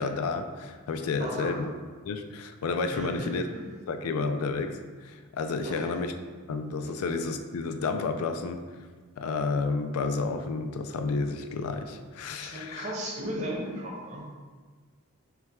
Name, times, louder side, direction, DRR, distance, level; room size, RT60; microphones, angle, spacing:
voice 1, 0.0-1.7 2.1-3.5 3.9-4.8 5.0-6.1 6.5-8.6 9.2-12.9, left 4 dB, 85° left, 7 dB, 0.4 m, -31 dB
voice 2, 1.2-1.6 2.9-3.8 5.6-5.9 6.8-6.9 12.4-14.3, equal, 30° right, -2 dB, 0.7 m, -36 dB
5.7 x 2.2 x 3.5 m, 1.5 s
head